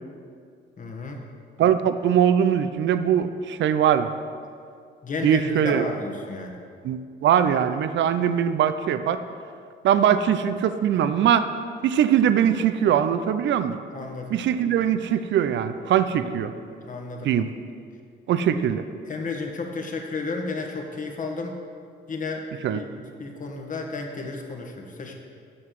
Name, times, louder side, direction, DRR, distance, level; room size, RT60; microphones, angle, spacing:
voice 1, 0.8-1.2 5.0-6.6 13.9-14.3 16.2-16.4 16.8-17.3 18.5-18.6 19.1-21.6 22.1-25.1, left 3 dB, 40° left, 2 dB, 1.5 m, -32 dB
voice 2, 1.6-4.1 5.2-5.8 6.8-9.2 9.8-11.5 11.8-13.8 14.3-16.5 17.2-17.5 18.3-18.8 22.6-22.8, right 9 dB, 70° right, 11 dB, 0.6 m, -21 dB
7.7 x 6.1 x 7.5 m, 2.2 s
cardioid pair, 90°, 20 cm